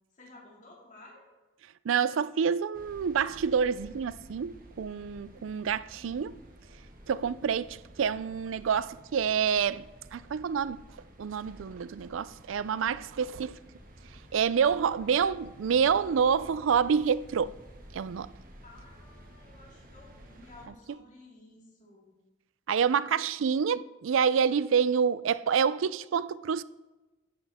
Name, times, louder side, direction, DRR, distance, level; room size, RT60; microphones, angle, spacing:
voice 1, 0.1-1.3 5.3-6.1 18.6-22.2, left 2 dB, 40° left, 2.3 m, -54 dB
voice 2, 1.8-6.4 7.1-9.9 10.1-10.8 11.2-13.6 14.3-17.5 17.9-18.3 22.7-26.6, right 7 dB, 90° right, 0.4 m, -27 dB
sound 1, 2.7-20.7, equal, 45° right, 1.5 m, -52 dB
11.0 x 11.0 x 3.6 m
head